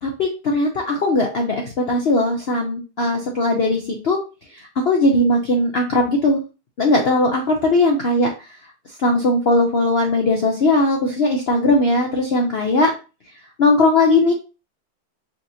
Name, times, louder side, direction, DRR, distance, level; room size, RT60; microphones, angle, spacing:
voice 1, 0.0-4.2 4.9-6.4 6.8-8.3 9.0-12.9 13.6-14.3, left 2 dB, 70° left, 1 dB, 0.5 m, -18 dB
4.9 x 2.9 x 2.7 m, 0.31 s
omnidirectional pair, 1.9 m